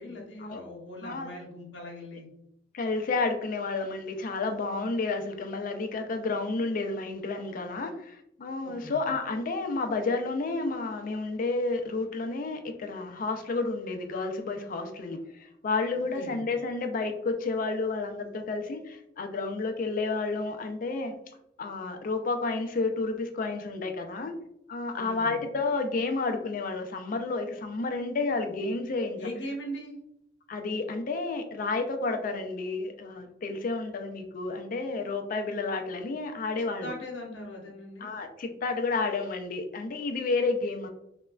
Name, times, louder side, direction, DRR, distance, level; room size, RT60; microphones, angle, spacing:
voice 1, 0.0-2.3 8.6-9.0 16.1-16.4 24.9-25.4 29.2-30.0 36.8-38.1, equal, 70° left, 0 dB, 0.8 m, -40 dB
voice 2, 2.7-21.1 21.6-24.3 24.7-29.2 30.5-36.9 38.0-40.9, left 3 dB, 45° left, 6 dB, 0.4 m, -31 dB
3.1 x 2.1 x 2.3 m, 0.78 s
head